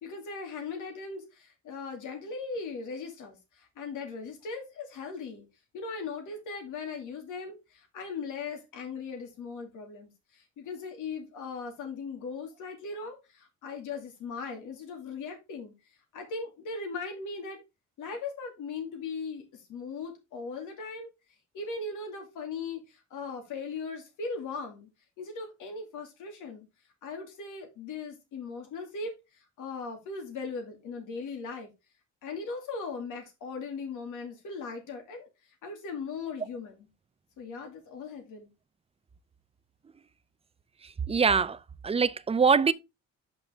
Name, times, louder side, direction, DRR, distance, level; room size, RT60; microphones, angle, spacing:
voice 1, 0.0-5.5 5.7-15.7 16.1-17.6 18.0-21.1 21.5-24.9 25.2-26.7 27.0-31.7 32.2-35.3 35.6-36.9 37.4-38.5, left 4 dB, 85° left, 2.5 m, -39 dB
voice 2, 41.1-41.6 41.8-42.7, right 5 dB, 20° right, 0.5 m, -23 dB
6.7 x 5.4 x 3.6 m
cardioid pair, 90°, 30 cm